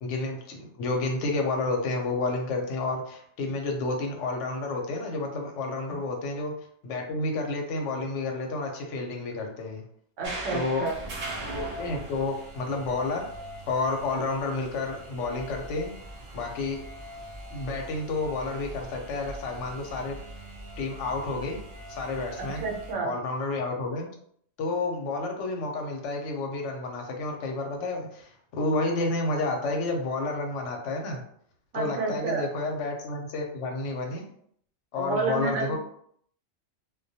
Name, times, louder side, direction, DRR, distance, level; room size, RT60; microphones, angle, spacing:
voice 1, 0.0-6.5 6.8-9.8 10.5-10.8 11.4-13.3 13.7-15.9 16.3-16.8 17.5-20.2 20.8-21.6 21.9-22.6 23.0-24.1 24.6-31.2 31.7-34.2 34.9-35.8, left 3 dB, 85° left, 2 dB, 0.9 m, -30 dB
sound 1, 10.2-22.9, right 1 dB, 65° right, 0.4 m, -41 dB
voice 2, 10.2-10.9 22.4-23.1 31.7-32.5 35.0-35.8, right 4 dB, 90° right, 0 dB, 1.0 m, -30 dB
2.2 x 2.2 x 2.6 m, 0.65 s
omnidirectional pair, 1.2 m